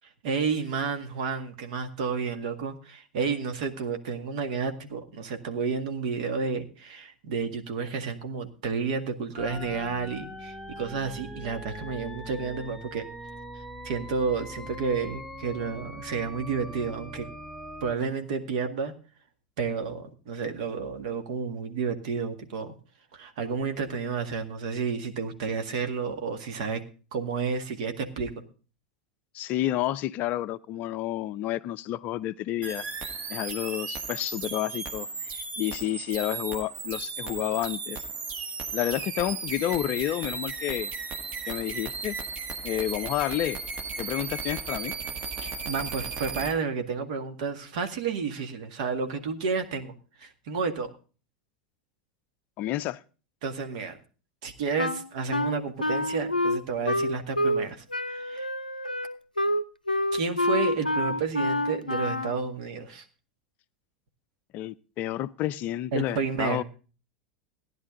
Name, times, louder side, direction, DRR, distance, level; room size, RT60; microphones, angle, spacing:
voice 1, 0.2-13.0 13.8-17.2 17.8-18.9 19.6-22.7 23.1-26.8 27.1-28.4 45.4-49.9 50.2-50.9 53.4-54.0 54.4-58.5 60.1-63.1 65.9-66.6, right 5 dB, 55° right, 1.9 m, -31 dB
sound 1, 9.4-17.9, equal, ahead, 1.2 m, -41 dB
voice 2, 29.3-32.8 33.3-38.0 38.7-40.9 41.5-42.2 42.6-43.6 44.0-44.9 52.6-53.0 64.5-66.6, left 13 dB, 40° left, 0.5 m, -30 dB
sound 2, 32.6-46.5, right 5 dB, 35° right, 1.7 m, -35 dB
Wind instrument woodwind instrument, 54.8-57.7 57.9-62.4, left 1 dB, 85° left, 0.6 m, -27 dB
16.0 x 10.5 x 3.8 m
figure-of-eight pair, 85°, 5 cm